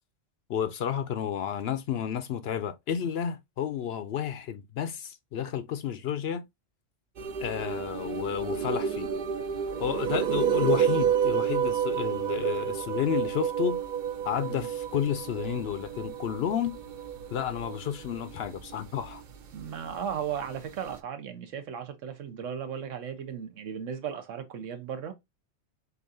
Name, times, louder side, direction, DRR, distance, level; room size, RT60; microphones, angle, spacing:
voice 1, 0.5-6.5 7.4-9.1 9.8-13.8 14.2-16.8 17.3-19.2, left 9 dB, 65° left, 0.7 m, -31 dB
sound 1, 7.2-21.0, right 8 dB, 60° right, 0.5 m, -30 dB
voice 2, 19.5-25.1, right 8 dB, 80° right, 1.1 m, -36 dB
6.6 x 2.5 x 2.6 m
omnidirectional pair, 1.3 m